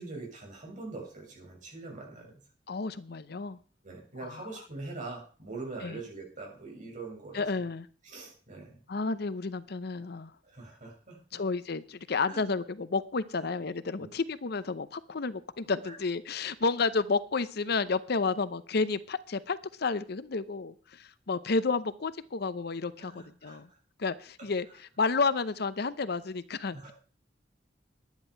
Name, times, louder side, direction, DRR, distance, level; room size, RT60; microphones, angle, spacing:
voice 1, 0.0-2.3 3.8-7.7 8.0-8.8 10.4-11.4 12.2-12.4 13.4-13.5 14.0-14.1 15.8-16.0 23.0-23.8 24.4-24.5 26.7-26.9, right 3 dB, 45° right, -1 dB, 6.7 m, -43 dB
voice 2, 2.7-3.6 4.2-4.5 5.8-6.0 7.3-7.9 8.9-10.3 11.3-23.7 24.0-26.8, left 4 dB, 60° left, 15 dB, 0.7 m, -31 dB
11.0 x 10.5 x 5.7 m, 0.40 s
head